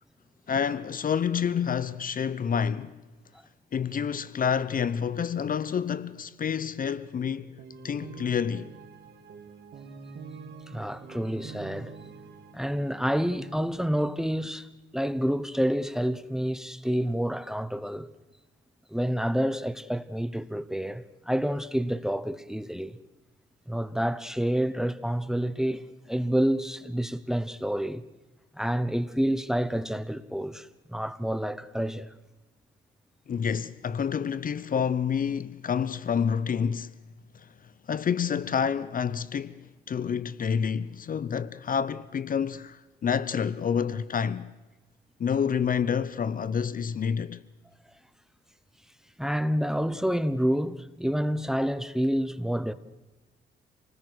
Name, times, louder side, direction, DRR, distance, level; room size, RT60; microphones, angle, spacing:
voice 1, 0.5-3.0 3.7-7.6 7.8-8.7 33.3-36.9 37.3-37.5 37.9-44.5 45.2-47.4, left 7 dB, 45° left, 0.8 m, -28 dB
sound 1, 7.3-13.7, right 4 dB, 60° right, 3.2 m, -45 dB
voice 2, 10.7-12.0 12.5-14.7 14.9-18.1 18.9-23.0 23.7-28.0 28.6-32.1 49.2-52.7, equal, ahead, 1.0 m, -28 dB
28.0 x 19.5 x 6.2 m
cardioid pair, 90°, 20 cm